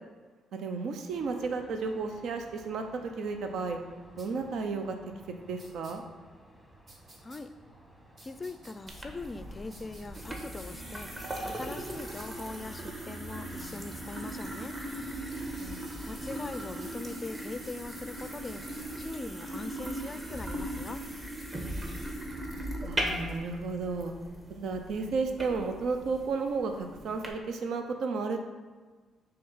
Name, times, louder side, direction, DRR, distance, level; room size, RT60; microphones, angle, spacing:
voice 1, 0.5-3.8 4.2-5.0 5.4-6.0 15.6-15.9 22.8-24.1 24.5-28.4, right 4 dB, 75° right, 5 dB, 0.6 m, -33 dB
sound 1, 1.1-19.0, right 1 dB, 15° right, 1.4 m, -52 dB
sound 2, 4.2-4.3 5.6-5.9 6.9-7.4 8.2-9.0 9.7-10.7 12.1-12.4 13.5-13.9 15.5-19.1 20.1-23.4, right 2 dB, 55° right, 1.6 m, -55 dB
voice 2, 8.2-11.1 11.4-14.8 16.1-18.6 19.0-21.0, left 3 dB, 25° left, 11 dB, 0.4 m, -41 dB
sound 3, 8.9-27.3, right 1 dB, 30° right, 1.4 m, -39 dB
6.6 x 3.5 x 5.6 m, 1.4 s
cardioid pair, 90°, 0 cm